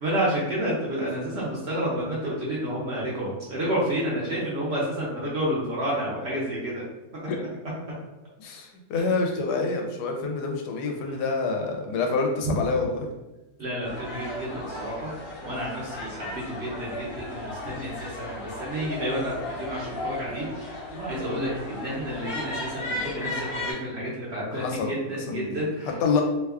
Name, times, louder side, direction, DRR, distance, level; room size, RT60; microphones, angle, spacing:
voice 1, 0.0-6.8 11.1-11.2 13.6-15.1 15.4-20.5 20.9-25.9, equal, 50° right, -5 dB, 0.8 m, -30 dB
voice 2, 8.4-13.1 24.5-26.2, left 4 dB, 85° left, 2 dB, 1.2 m, -27 dB
sound 1, 13.8-23.7, left 2 dB, 40° left, 0.8 m, -35 dB
2.9 x 2.2 x 3.4 m, 1.0 s
omnidirectional pair, 1.7 m